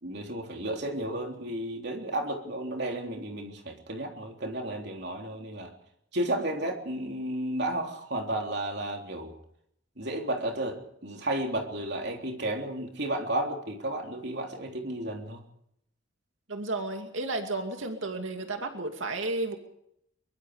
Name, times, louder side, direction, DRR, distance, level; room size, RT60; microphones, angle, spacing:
voice 1, 0.0-5.7 6.1-9.3 10.0-15.4, right 1 dB, 55° right, 2 dB, 3.6 m, -33 dB
voice 2, 16.5-19.6, right 2 dB, 75° right, 4 dB, 2.5 m, -32 dB
23.5 x 22.5 x 5.1 m, 0.74 s
head